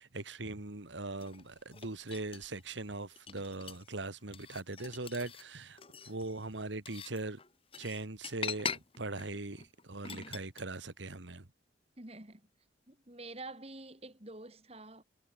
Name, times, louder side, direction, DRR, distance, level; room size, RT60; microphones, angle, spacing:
voice 1, 0.0-7.4 7.8-11.5, right 2 dB, 80° right, 2.0 m, -40 dB
sound 1, 1.1-2.6 3.1-3.9 4.3-5.4 5.8-10.6, left 6 dB, 30° left, 1.8 m, -43 dB
voice 2, 12.0-12.4 12.9-15.0, right 2 dB, 35° right, 2.7 m, -47 dB
head